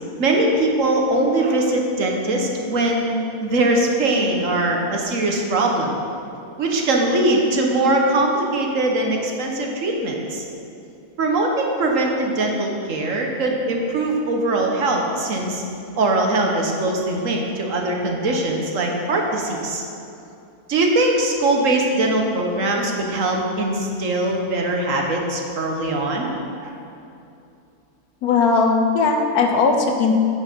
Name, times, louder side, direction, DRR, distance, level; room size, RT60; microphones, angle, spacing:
voice 1, 0.2-3.1 3.4-6.0 6.6-10.4 11.2-15.6 16.0-19.8 20.7-26.3 26.6-26.8, right 2 dB, 60° right, 1 dB, 1.3 m, -21 dB
voice 2, 28.2-30.1, left 4 dB, 80° left, 3 dB, 1.4 m, -18 dB
8.8 x 6.4 x 5.3 m, 2.7 s
omnidirectional pair, 1.6 m